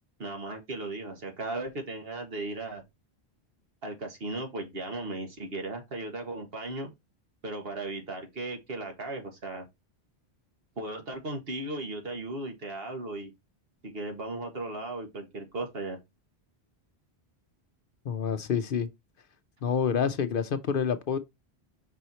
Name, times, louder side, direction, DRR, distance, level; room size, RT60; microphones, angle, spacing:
voice 1, 0.2-2.8 3.8-6.9 7.4-9.7 10.8-13.3 13.8-16.0, right 2 dB, 65° right, 1.8 m, -36 dB
voice 2, 18.0-18.9 19.6-21.2, left 7 dB, 60° left, 0.8 m, -28 dB
5.5 x 4.4 x 4.1 m
omnidirectional pair, 1.1 m